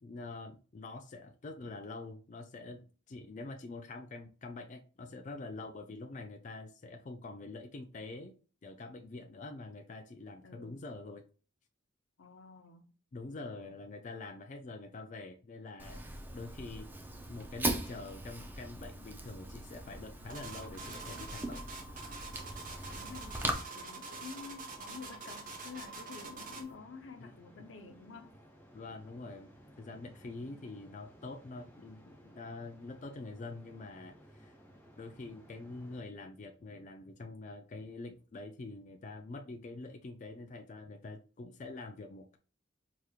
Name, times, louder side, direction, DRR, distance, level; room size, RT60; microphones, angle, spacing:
voice 1, 0.0-8.4 8.6-11.2 13.1-16.0 16.3-16.9 17.3-21.6 27.2-27.3 28.7-29.5 29.8-34.5 34.9-42.4, left 3 dB, 40° left, 0.4 m, -45 dB
voice 2, 10.4-10.8 12.2-12.9 13.4-13.7 22.9-28.3, left 5 dB, 80° left, 0.7 m, -50 dB
Fire, 15.8-23.5, right 2 dB, 10° right, 0.5 m, -40 dB
sound 1, 20.3-26.7, right 3 dB, 45° right, 1.1 m, -45 dB
sound 2, 22.4-36.0, equal, 10° left, 1.0 m, -59 dB
4.9 x 3.0 x 2.3 m
head